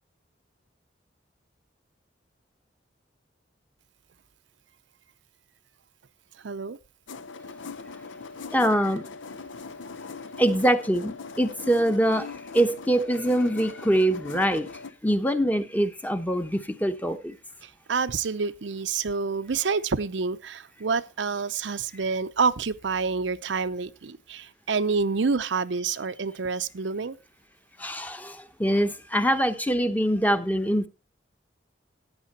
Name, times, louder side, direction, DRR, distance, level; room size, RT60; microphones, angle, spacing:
voice 1, 6.4-6.8 17.6-27.2, right 4 dB, 75° right, 0.6 m, -28 dB
sound 1, 7.1-14.9, left 4 dB, 90° left, 0.7 m, -40 dB
voice 2, 8.5-9.0 10.4-14.7 15.0-17.4 27.8-30.9, right 1 dB, 10° left, 0.9 m, -24 dB
14.5 x 9.4 x 4.2 m
head